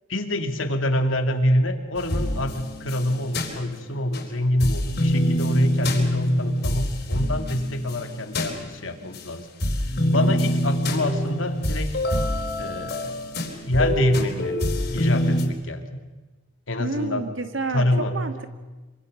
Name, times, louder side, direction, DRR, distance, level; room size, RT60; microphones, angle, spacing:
voice 1, 0.1-9.5 10.1-12.0 12.6-13.1 13.7-14.5 14.9-16.0 16.7-17.2 17.7-18.2, left 1 dB, 80° left, 5 dB, 2.6 m, -25 dB
sound 1, 2.0-4.2 4.6-9.2 9.6-15.4, equal, 55° left, 4.2 m, -26 dB
voice 2, 16.8-18.5, right 3 dB, 70° right, 8 dB, 2.0 m, -29 dB
26.0 x 25.0 x 6.7 m, 1.2 s
head